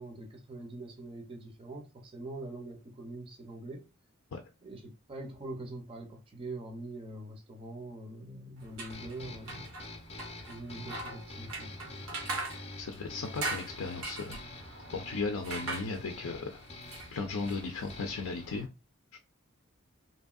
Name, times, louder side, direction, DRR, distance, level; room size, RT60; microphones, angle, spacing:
voice 1, 0.0-3.9 4.6-9.7 10.5-12.0, right 2 dB, 25° right, 0.5 m, -43 dB
sound 1, 8.6-18.7, right 2 dB, 85° right, 0.8 m, -42 dB
sound 2, 8.9-18.5, left 2 dB, 30° left, 0.5 m, -47 dB
voice 2, 12.8-14.4 14.9-16.6 17.1-18.7, left 4 dB, 85° left, 0.5 m, -36 dB
2.8 x 2.6 x 2.3 m
head